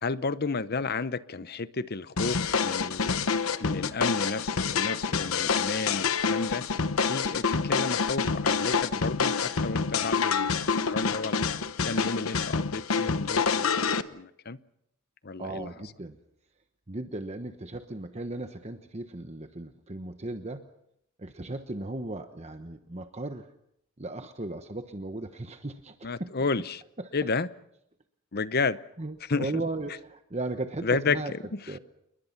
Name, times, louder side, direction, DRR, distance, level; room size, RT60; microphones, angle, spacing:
voice 1, 0.0-3.2 3.6-6.6 7.1-11.4 11.8-14.6 15.2-15.7 26.0-26.8 27.1-27.5 28.3-28.8 29.3-29.6 30.8-31.2 31.5-31.6, left 4 dB, 45° left, 0.8 m, -32 dB
sound 1, 2.2-14.0, left 5 dB, 75° left, 1.0 m, -27 dB
voice 2, 15.4-16.2 16.9-20.7 21.2-23.5 24.0-26.3 27.0-27.1 29.0-31.3 31.7-31.8, right 2 dB, 30° right, 1.1 m, -36 dB
29.0 x 22.0 x 5.9 m
head